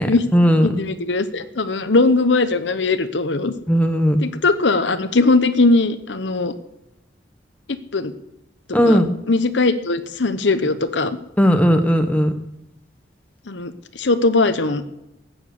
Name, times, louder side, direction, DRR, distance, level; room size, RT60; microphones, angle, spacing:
voice 1, 0.0-0.8 3.7-4.2 8.7-9.2 11.4-12.3, equal, 10° left, 6 dB, 1.1 m, -17 dB
voice 2, 0.6-3.5 4.2-6.5 7.9-8.1 8.9-9.0 9.3-11.2 13.5-14.8, left 3 dB, 80° left, 11 dB, 1.0 m, -19 dB
14.0 x 9.1 x 6.6 m, 0.88 s
head